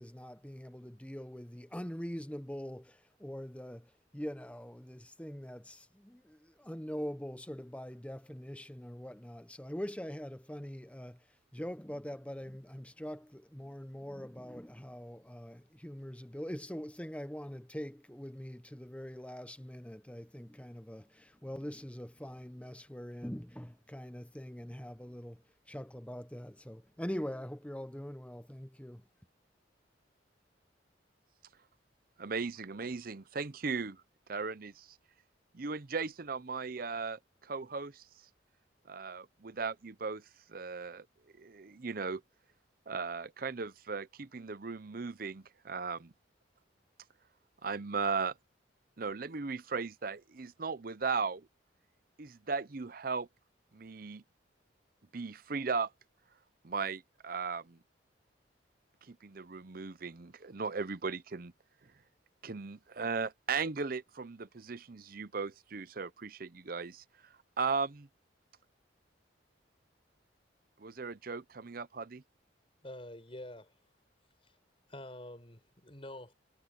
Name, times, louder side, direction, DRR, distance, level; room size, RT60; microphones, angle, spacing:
voice 1, 0.0-29.1, equal, 5° left, 0.9 m, -43 dB
voice 2, 32.2-34.0 34.3-34.9 35.5-38.0 38.9-40.2 40.5-41.1 41.4-42.2 42.9-46.1 47.6-48.3 49.0-51.5 52.2-53.3 53.7-54.2 55.1-55.9 56.6-57.8 59.1-61.5 62.4-67.0 67.6-68.1 70.8-72.2, right 4 dB, 50° right, 0.7 m, -37 dB
voice 3, 72.8-73.8 74.4-74.5 74.9-76.3, left 1 dB, 30° left, 5.5 m, -47 dB
head